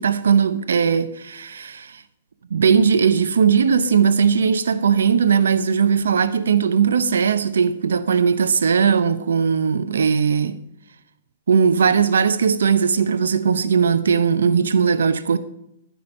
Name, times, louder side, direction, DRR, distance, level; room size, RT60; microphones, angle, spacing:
voice 1, 0.0-2.0 2.5-10.6 11.5-15.4, right 6 dB, 85° right, 0.8 m, -18 dB
11.5 x 10.0 x 5.3 m
hypercardioid pair, 130°, 0 cm